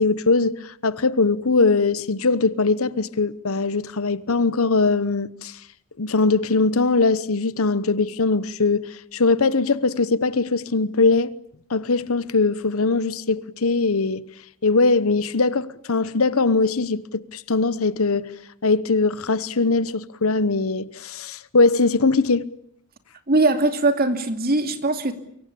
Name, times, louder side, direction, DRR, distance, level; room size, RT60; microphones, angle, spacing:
voice 1, 0.0-5.6 6.0-11.3 11.7-14.3 14.6-18.3 18.6-22.5, left 3 dB, 70° left, 1.0 m, -21 dB
voice 2, 23.3-25.1, right 2 dB, 45° right, 2.6 m, -20 dB
24.5 x 23.5 x 8.7 m
head